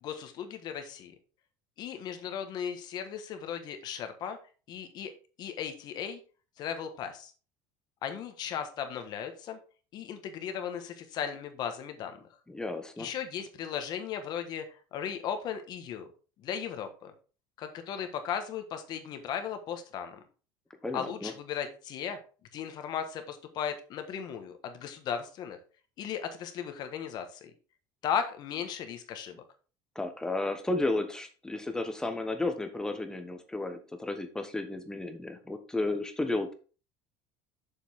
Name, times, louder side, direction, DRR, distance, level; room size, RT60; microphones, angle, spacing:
voice 1, 0.0-1.1 1.8-4.4 4.7-5.1 5.4-6.2 6.6-7.3 8.0-9.6 9.9-12.2 13.0-16.1 16.4-17.1 17.6-20.2 20.9-22.2 22.5-25.6 26.0-27.5 28.0-29.4, left 8 dB, 45° left, 7 dB, 1.4 m, -36 dB
voice 2, 12.5-13.1 20.8-21.3 29.9-36.5, left 2 dB, 5° left, 7 dB, 1.1 m, -33 dB
7.1 x 7.0 x 3.6 m, 0.37 s
cardioid pair, 155°, 10 cm